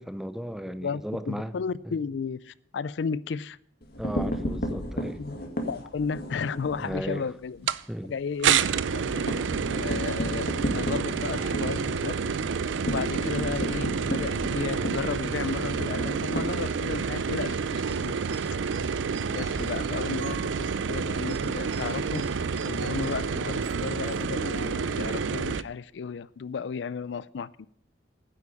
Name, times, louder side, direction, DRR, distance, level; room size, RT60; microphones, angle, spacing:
voice 1, 0.0-1.5 4.0-5.2 6.8-7.3 7.9-8.1, equal, ahead, 0.6 m, -35 dB
voice 2, 0.7-1.0 1.3-3.6 5.2-7.6 8.0-9.5 9.7-10.5 10.7-12.2 12.8-18.1 19.3-22.2 22.6-27.7, left 5 dB, 75° left, 0.4 m, -34 dB
sound 1, 3.8-7.0 7.4-7.6 7.9-8.0 8.3-17.2, equal, 55° left, 2.0 m, -33 dB
sound 2, 7.7-7.8 8.4-25.6, right 6 dB, 90° right, 0.5 m, -29 dB
sound 3, 17.8-24.7, right 7 dB, 70° right, 1.1 m, -47 dB
9.9 x 8.3 x 8.4 m
head